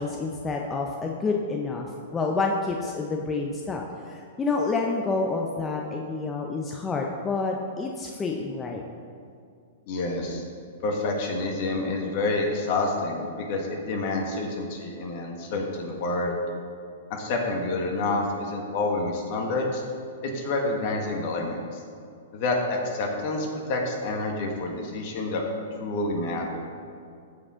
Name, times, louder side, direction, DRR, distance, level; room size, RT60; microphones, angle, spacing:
voice 1, 0.0-8.8, left 3 dB, 15° left, 0 dB, 0.6 m, -28 dB
voice 2, 9.9-10.4 10.8-16.3 17.1-19.8 20.2-21.8 22.3-25.4 25.8-26.6, left 2 dB, 50° left, 1 dB, 1.7 m, -28 dB
15.0 x 5.0 x 3.7 m, 2.3 s
hypercardioid pair, 125°, 0 cm